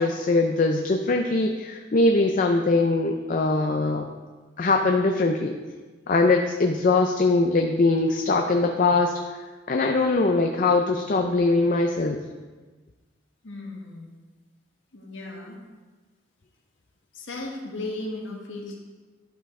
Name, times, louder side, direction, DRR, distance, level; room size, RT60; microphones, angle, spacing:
voice 1, 0.0-4.1 4.6-5.6 6.1-12.2, left 3 dB, 45° left, 3 dB, 0.5 m, -22 dB
voice 2, 13.4-14.2 14.9-15.6 17.1-18.8, left 2 dB, 75° left, 0 dB, 1.5 m, -36 dB
11.5 x 5.2 x 3.7 m, 1.3 s
head